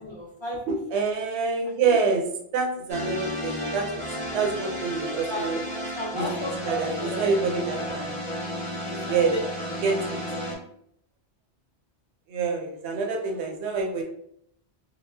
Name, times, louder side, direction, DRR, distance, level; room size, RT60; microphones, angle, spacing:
voice 1, 0.0-0.7 1.8-2.0 5.3-5.5 5.9-7.4 7.7-8.1 8.8-9.4 10.0-10.4, left 1 dB, 45° left, -5 dB, 0.3 m, -34 dB
voice 2, 0.7-2.2 2.5-3.9 4.3-5.6 6.1-6.3 6.6-8.2 9.1-9.3 9.8-10.2 12.3-14.0, right 5 dB, 75° right, 2 dB, 0.8 m, -26 dB
sound 1, 2.9-10.5, equal, 10° left, 0.6 m, -33 dB
3.8 x 2.1 x 2.3 m, 0.71 s
omnidirectional pair, 1.2 m